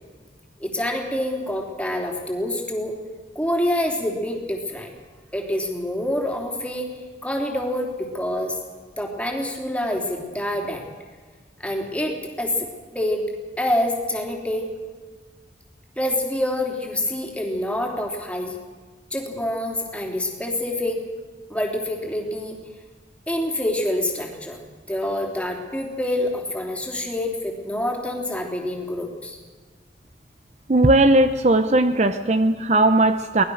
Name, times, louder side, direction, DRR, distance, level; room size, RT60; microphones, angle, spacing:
voice 1, 0.6-3.0 3.4-4.9 5.3-6.9 7.2-8.6 9.0-10.8 11.6-12.7 12.9-13.3 13.6-14.7 16.0-18.6 19.1-21.0 21.5-22.6 23.3-24.6 24.9-29.4, left 1 dB, 5° left, 1 dB, 3.4 m, -26 dB
voice 2, 30.7-33.4, right 2 dB, 40° right, 9 dB, 0.8 m, -17 dB
24.0 x 19.0 x 6.5 m, 1.5 s
head